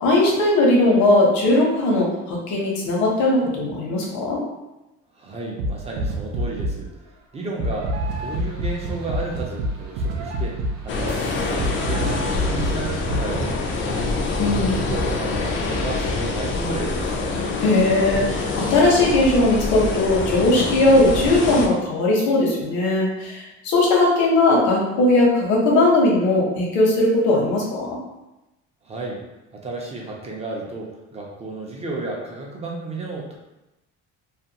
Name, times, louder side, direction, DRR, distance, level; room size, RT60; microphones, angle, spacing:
voice 1, 0.0-4.4 14.4-14.8 17.6-27.9, left 2 dB, 75° left, -2 dB, 0.9 m, -19 dB
voice 2, 5.1-6.9 7.3-14.1 14.6-17.2 28.8-29.2 29.5-33.4, right 2 dB, 20° right, -1 dB, 0.4 m, -32 dB
sound 1, 5.6-6.9 7.6-13.6, right 1 dB, 80° right, 0.5 m, -27 dB
sound 2, 10.9-21.7, left 3 dB, 45° left, 0.4 m, -25 dB
2.4 x 2.2 x 2.8 m, 0.98 s
cardioid pair, 145°, 29 cm